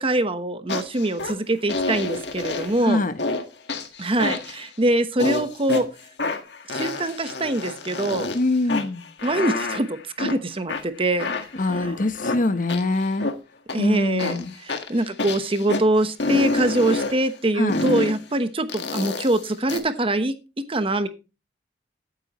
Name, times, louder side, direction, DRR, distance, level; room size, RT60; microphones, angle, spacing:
voice 1, 0.0-3.0 4.0-5.9 6.7-8.3 9.2-11.3 11.7-11.9 13.7-21.1, right 1 dB, 30° right, 1.0 m, -24 dB
sound 1, 0.7-1.3 1.7-2.8 3.2-3.4 3.7-4.7 5.2-5.8 6.2-8.4 8.7-10.4 10.7-13.3 13.7-13.8 14.2-15.8 16.2-17.2 17.7-18.2 18.7-19.8, left 3 dB, 70° left, 1.6 m, -28 dB
voice 2, 8.3-9.0 11.6-13.3 13.8-14.5 17.6-17.8, left 2 dB, 50° left, 1.0 m, -23 dB
15.0 x 9.2 x 3.0 m
head